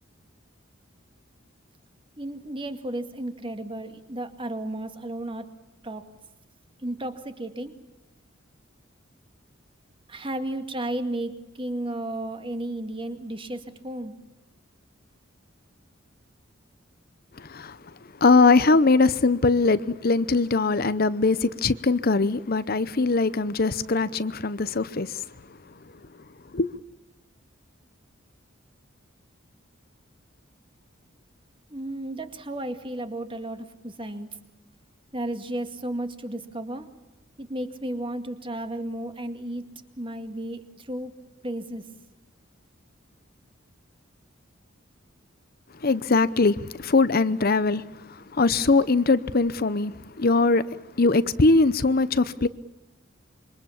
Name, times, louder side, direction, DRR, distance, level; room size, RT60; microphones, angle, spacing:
voice 1, 2.2-5.5 5.8-6.1 6.8-7.8 10.1-14.2 31.7-34.3 35.1-36.9 37.4-39.6 40.0-41.2 41.4-41.9, right 1 dB, 25° right, 2.2 m, -33 dB
voice 2, 17.4-17.8 18.2-25.3 26.5-26.8 45.8-52.5, left 3 dB, 50° left, 0.8 m, -21 dB
27.0 x 24.0 x 7.2 m
head